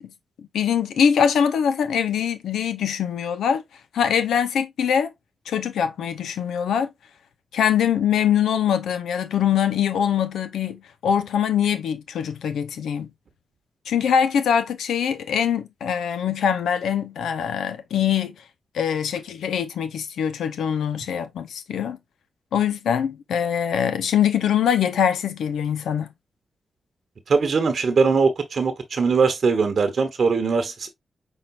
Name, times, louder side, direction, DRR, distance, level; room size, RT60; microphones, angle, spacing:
voice 1, 0.5-3.6 3.9-5.1 5.5-6.9 7.5-13.1 13.9-18.3 18.7-22.0 22.5-26.1, left 8 dB, 90° left, 0.6 m, -23 dB
voice 2, 27.3-30.9, right 4 dB, 65° right, 0.9 m, -21 dB
5.7 x 3.6 x 2.4 m
cardioid pair, 50°, 0 cm